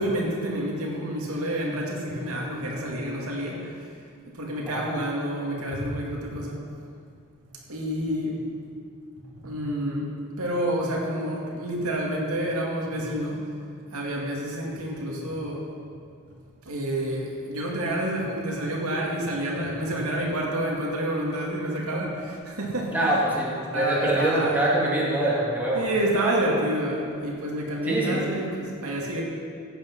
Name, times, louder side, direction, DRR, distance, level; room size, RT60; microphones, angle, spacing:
voice 1, 0.0-3.8 4.3-6.7 7.7-8.4 9.3-13.5 13.9-15.7 16.6-23.2 23.7-24.6 25.7-29.2, right 1 dB, 75° right, -2 dB, 2.3 m, -29 dB
voice 2, 22.9-25.9 27.8-28.2, right 1 dB, 10° right, -6 dB, 2.6 m, -24 dB
15.5 x 8.9 x 5.5 m, 2.3 s
head